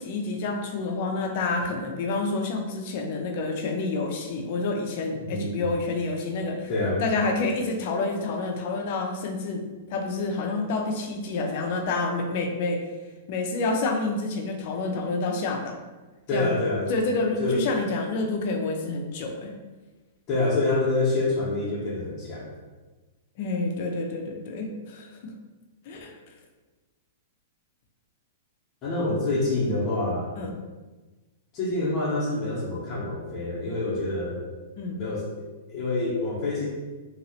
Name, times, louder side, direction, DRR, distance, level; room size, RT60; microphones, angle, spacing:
voice 1, 0.0-6.7 7.0-12.9 13.3-15.8 16.3-16.5 16.9-19.5 23.4-25.3 25.9-26.2 30.4-30.6 34.8-35.0, left 3 dB, 55° left, 3 dB, 0.6 m, -28 dB
voice 2, 5.2-5.8 6.7-7.0 16.3-16.9 17.4-17.6 20.3-22.5 28.8-30.3 31.5-34.4 34.9-36.7, left 2 dB, 35° left, -7 dB, 1.0 m, -27 dB
2.9 x 2.8 x 2.8 m, 1.2 s
hypercardioid pair, 130°, 0 cm